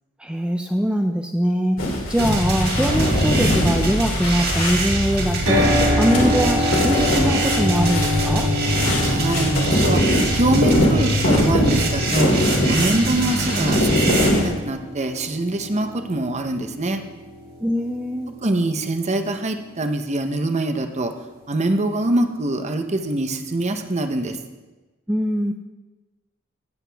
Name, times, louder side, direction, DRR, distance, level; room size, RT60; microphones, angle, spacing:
voice 1, 0.2-1.8 2.1-5.7 6.0-8.5 17.6-18.3 25.1-25.5, equal, 5° right, 3 dB, 0.5 m, -22 dB
sound 1, 1.8-14.4, left 1 dB, 75° left, 3.0 m, -23 dB
sound 2, 2.2-14.3, right 1 dB, 50° right, 2.4 m, -24 dB
sound 3, 5.5-19.6, equal, 80° right, 2.4 m, -28 dB
voice 2, 9.1-12.3 12.7-17.0 18.4-21.1 21.5-24.4, right 2 dB, 35° right, 7 dB, 0.8 m, -24 dB
17.0 x 8.1 x 3.4 m, 1.2 s
head